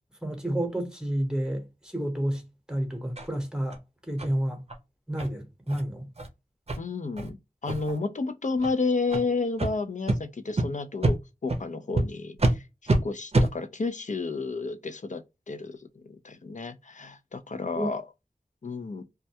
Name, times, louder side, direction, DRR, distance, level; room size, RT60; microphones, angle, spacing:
voice 1, 0.2-2.4 2.7-3.8 4.1-4.6 5.1-6.1 17.8-17.9, right 1 dB, 5° right, 0.9 m, -30 dB
sound 1, 3.2-3.3 3.7-3.8 4.2-4.3 4.7-4.8 5.2-5.3 5.7-5.8 6.2-6.3 6.7-6.8 7.2-7.3 7.7-8.0 8.6-8.7 9.1-9.2 9.6-9.7 10.1-10.2 10.6-10.7 11.0-11.2 11.5-11.6 12.0-12.1 12.4-12.5 12.9-13.0 13.3-13.5, right 2 dB, 45° right, 0.5 m, -25 dB
voice 2, 6.8-7.4 7.6-12.6 13.0-18.0 18.6-19.0, left 3 dB, 55° left, 0.4 m, -31 dB
2.3 x 2.1 x 2.7 m
wide cardioid pair, 60°, 15 cm